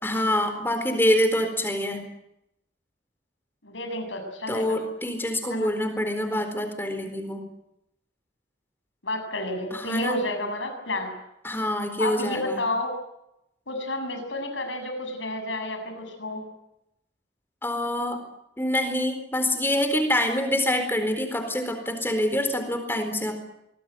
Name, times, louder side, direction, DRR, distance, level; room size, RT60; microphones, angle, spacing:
voice 1, 0.0-2.0 4.5-7.5 9.7-10.2 11.4-12.6 17.6-18.2 18.6-23.3, left 1 dB, 10° left, 7 dB, 4.2 m, -26 dB
voice 2, 3.6-4.8 5.5-5.7 9.0-11.1 12.0-12.9 13.7-16.4, left 1 dB, 90° left, 6 dB, 7.2 m, -30 dB
24.5 x 20.5 x 9.3 m, 0.84 s
head